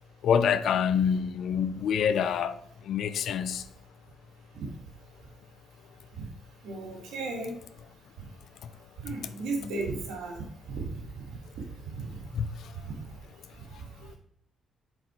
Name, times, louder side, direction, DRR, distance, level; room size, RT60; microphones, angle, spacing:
voice 1, 0.2-2.6 2.9-3.6 12.4-12.5, left 7 dB, 70° left, 0.5 m, -26 dB
voice 2, 6.6-7.5 9.0-11.2 11.6-12.3 12.8-13.0, right 3 dB, 90° right, 1.9 m, -35 dB
6.5 x 4.3 x 4.4 m
cardioid pair, 90°, 0 cm